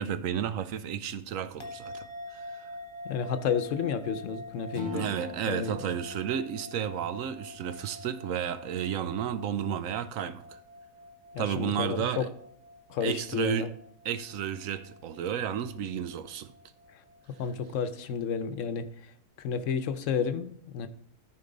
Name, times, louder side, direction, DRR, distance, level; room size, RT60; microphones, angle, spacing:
voice 1, 0.0-2.7 4.9-10.6 11.4-12.3 13.0-13.7 14.0-16.5, right 9 dB, 80° right, 1.0 m, -32 dB
sound 1, 1.6-18.1, left 1 dB, 25° left, 0.9 m, -47 dB
voice 2, 3.0-5.0 5.5-5.8 11.3-12.3 12.9-13.7 17.4-18.9 19.4-20.9, left 6 dB, 75° left, 1.0 m, -31 dB
Acoustic guitar / Strum, 4.7-7.9, left 2 dB, 45° right, 1.6 m, -44 dB
13.5 x 4.7 x 3.9 m
omnidirectional pair, 1.4 m